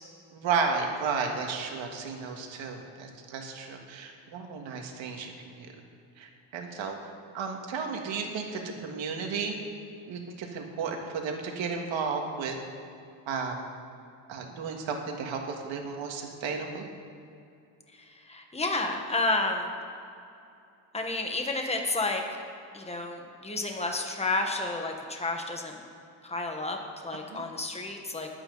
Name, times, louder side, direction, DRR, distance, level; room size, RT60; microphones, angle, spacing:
voice 1, 0.3-5.7 6.2-9.6 10.1-12.6 13.3-13.6 14.3-16.9 27.3-27.4, right 5 dB, 75° right, 2 dB, 2.0 m, -33 dB
voice 2, 17.9-19.7 20.9-22.2 22.7-25.8 26.2-26.8 27.0-28.3, left 2 dB, 15° left, 2 dB, 1.5 m, -31 dB
20.5 x 8.7 x 4.0 m, 2.6 s
cardioid pair, 130°, 46 cm